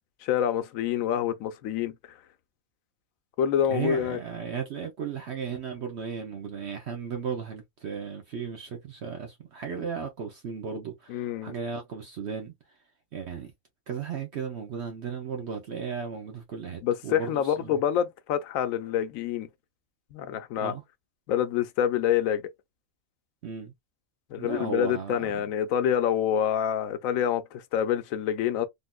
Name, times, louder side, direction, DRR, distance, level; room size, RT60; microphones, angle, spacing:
voice 1, 0.2-1.9 3.4-4.2 11.1-11.5 16.8-19.5 20.1-20.7 21.3-22.5 24.3-28.7, left 9 dB, 90° left, 1.0 m, -27 dB
voice 2, 3.7-12.5 13.1-13.5 13.9-17.8 20.6-20.8 23.4-23.7 24.3-25.3, right 6 dB, 60° right, 1.0 m, -35 dB
3.6 x 2.6 x 2.3 m
omnidirectional pair, 1.4 m